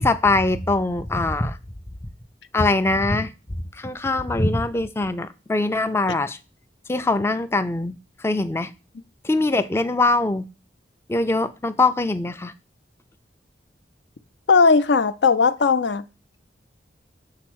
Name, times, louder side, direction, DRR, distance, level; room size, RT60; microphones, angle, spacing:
voice 1, 0.0-1.6 2.5-3.3 3.7-6.4 6.9-7.9 8.2-8.7 9.2-10.4 11.1-12.5, left 2 dB, 15° left, 0.3 m, -22 dB
voice 2, 14.5-16.0, left 4 dB, 75° left, 0.5 m, -17 dB
5.7 x 4.2 x 6.1 m
head